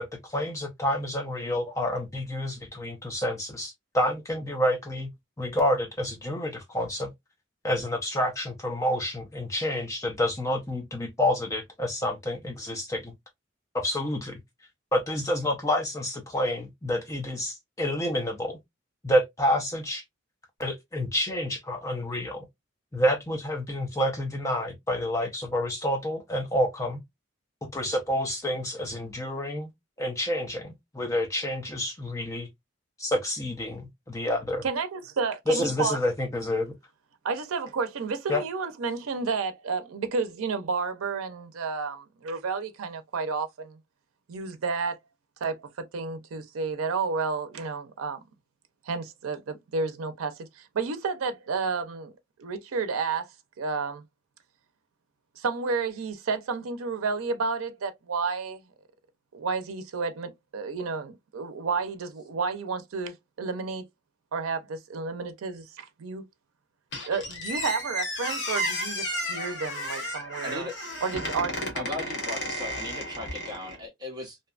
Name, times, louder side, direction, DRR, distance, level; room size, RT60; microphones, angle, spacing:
voice 1, 0.0-5.1 5.4-7.1 7.6-13.1 13.7-14.4 14.9-18.6 19.0-20.0 20.6-22.4 22.9-27.0 27.6-29.7 30.0-32.5 33.0-34.6 35.5-36.7 38.3-38.4, left 1 dB, 15° left, 0.4 m, -28 dB
voice 2, 34.6-36.0 37.2-43.8 44.3-45.0 45.4-48.2 48.8-52.1 52.4-53.3 53.6-54.0 55.4-58.6 59.3-63.8 64.3-66.2 67.1-70.7 71.0-71.7, right 4 dB, 90° right, 0.5 m, -31 dB
Squeak, 66.9-73.8, equal, 55° left, 0.9 m, -33 dB
voice 3, 70.4-70.8 71.7-74.4, left 2 dB, 20° right, 0.8 m, -37 dB
2.6 x 2.2 x 2.3 m
head